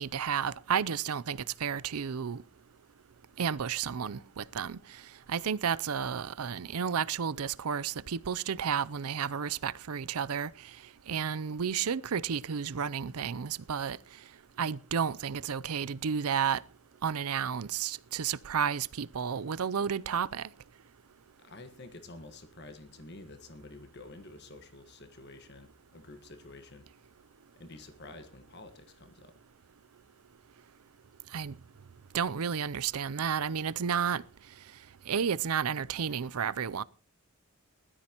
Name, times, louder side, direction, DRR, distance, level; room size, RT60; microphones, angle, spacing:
voice 1, 0.0-2.4 3.4-4.8 5.3-10.5 11.1-14.0 14.6-16.6 17.0-20.5 31.3-31.6 32.1-34.2 35.1-36.8, right 7 dB, 80° right, 0.5 m, -32 dB
voice 2, 21.4-26.9 27.6-29.3, left 2 dB, 50° left, 1.5 m, -49 dB
20.0 x 13.0 x 2.9 m
head